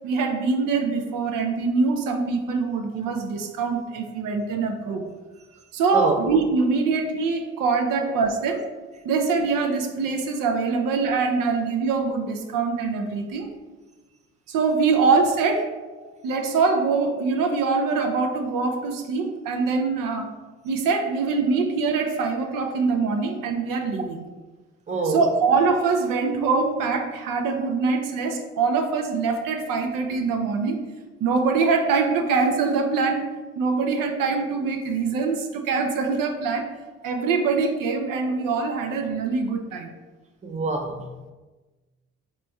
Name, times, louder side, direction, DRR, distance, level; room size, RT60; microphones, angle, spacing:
voice 1, 0.0-5.0 5.7-8.7 9.0-13.5 14.5-15.7 16.2-20.3 20.6-24.2 25.0-30.8 31.2-33.3 33.6-36.7 37.0-39.9, right 4 dB, 70° right, 4 dB, 0.5 m, -23 dB
voice 2, 24.9-25.2 40.4-41.3, right 3 dB, 20° right, 4 dB, 0.5 m, -27 dB
4.1 x 3.0 x 2.3 m, 1.2 s
hypercardioid pair, 40°, 35 cm